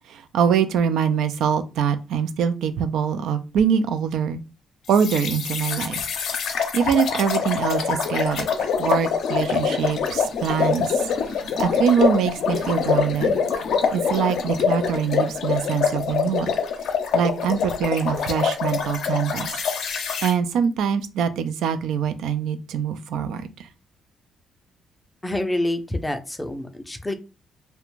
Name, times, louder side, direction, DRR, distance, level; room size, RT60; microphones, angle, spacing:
voice 1, 0.1-4.4 4.9-6.0 6.7-11.1 11.6-13.4 13.9-16.5 17.1-19.6 20.2-23.7, right 7 dB, 80° right, 10 dB, 0.3 m, -24 dB
Bubbles Descend & Ascend, 4.9-20.3, left 6 dB, 70° left, 0.5 m, -24 dB
voice 2, 25.2-27.1, left 1 dB, 15° left, 7 dB, 0.4 m, -27 dB
2.4 x 2.1 x 3.0 m, 0.30 s
cardioid pair, 90°, 0 cm